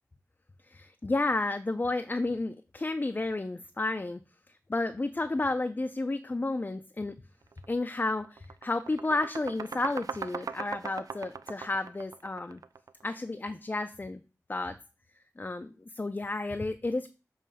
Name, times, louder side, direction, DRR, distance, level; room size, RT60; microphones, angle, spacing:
voice 1, 0.7-4.2 4.7-7.2 7.7-12.6 13.0-14.2 14.5-14.8 15.4-17.1, left 2 dB, 30° left, 7 dB, 0.5 m, -31 dB
sound 1, 7.5-7.7 8.1-13.0, right 5 dB, 75° right, 0.4 m, -40 dB
7.3 x 3.1 x 5.5 m, 0.32 s
wide cardioid pair, 60°, 6 cm